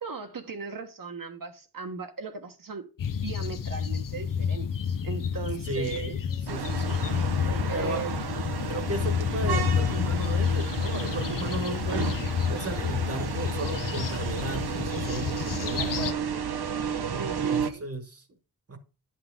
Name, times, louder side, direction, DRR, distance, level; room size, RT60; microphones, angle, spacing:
voice 1, 0.0-2.9 3.2-6.1 7.7-8.2 15.8-16.2 17.1-17.8, right 5 dB, 60° right, 1.3 m, -37 dB
sound 1, 3.0-16.1, left 7 dB, 60° left, 0.6 m, -29 dB
voice 2, 5.6-6.2 6.5-7.0 7.4-8.1 8.7-12.1 12.5-15.9 17.1-18.2 18.7-18.8, right 2 dB, 40° right, 1.5 m, -35 dB
sound 2, 6.5-17.7, right 7 dB, 80° right, 0.9 m, -32 dB
10.5 x 5.8 x 3.5 m
wide cardioid pair, 125°, 38 cm